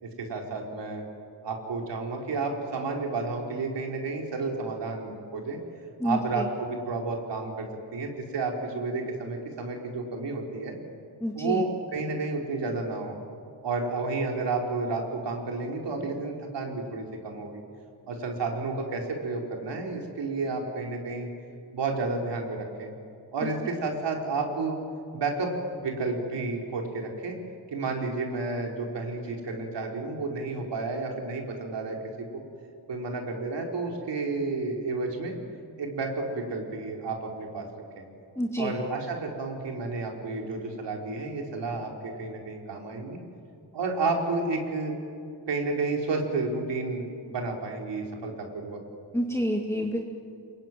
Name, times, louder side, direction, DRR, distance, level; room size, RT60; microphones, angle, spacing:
voice 1, 0.0-1.0 1.4-5.6 6.0-10.7 11.3-13.2 13.6-17.6 18.1-21.3 21.7-22.9 23.3-24.8 25.1-25.5 25.8-27.4 27.7-32.4 32.9-35.3 35.8-37.7 38.0-38.1 38.6-43.2 43.7-44.9 45.5-48.8, right 3 dB, 80° right, 1 dB, 4.4 m, -31 dB
voice 2, 6.0-6.5 11.2-11.6 38.4-38.7 49.1-50.0, equal, 5° left, 0 dB, 2.0 m, -28 dB
27.0 x 22.0 x 9.3 m, 2.4 s
wide cardioid pair, 110°, 42 cm